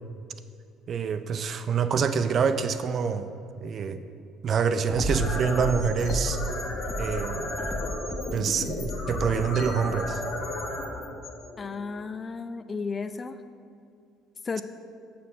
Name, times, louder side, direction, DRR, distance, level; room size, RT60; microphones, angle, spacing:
voice 1, 0.9-3.3 3.6-4.0 4.4-6.4 7.0-7.5 8.3-10.2, right 6 dB, 50° right, 10 dB, 0.4 m, -26 dB
sound 1, 4.9-6.5 6.8-9.6, equal, ahead, 0.8 m, -33 dB
sound 2, 5.1-12.0, left 2 dB, 55° left, 1.4 m, -34 dB
voice 2, 11.6-13.4 14.4-14.6, left 4 dB, 30° left, 11 dB, 0.4 m, -33 dB
7.3 x 4.3 x 6.1 m, 2.4 s
supercardioid pair, 75°, 0 cm